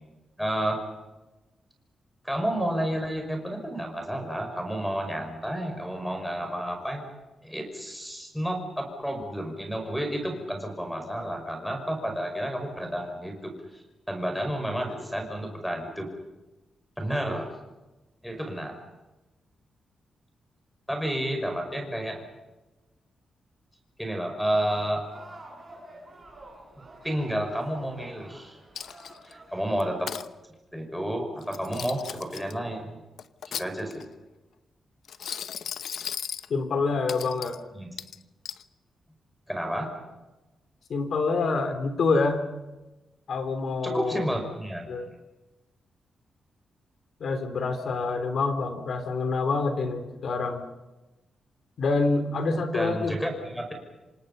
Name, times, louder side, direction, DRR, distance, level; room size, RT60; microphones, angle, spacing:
voice 1, 0.4-0.8 2.2-7.0 7.4-16.1 17.0-17.5 18.2-18.7 20.9-22.2 24.0-25.1 27.0-28.6 29.2-30.1 30.7-33.0 33.5-34.0 37.7-37.9 39.5-39.9 43.8-44.9 52.7-53.7, equal, ahead, 4 dB, 5.7 m, -31 dB
sound 1, 24.5-30.1, right 2 dB, 20° right, 6.9 m, -49 dB
Coin (dropping), 28.7-29.3 29.8-30.3 31.4-32.5 33.2-34.1 35.0-36.5 37.1-37.6 38.0-38.6, left 8 dB, 75° left, 0.9 m, -36 dB
voice 2, 36.5-37.6 40.9-42.4 43.3-44.2 44.9-45.1 47.2-50.6 51.8-53.1, left 3 dB, 55° left, 8 dB, 3.4 m, -26 dB
28.5 x 25.5 x 5.5 m, 1.1 s
wide cardioid pair, 160°, 0 cm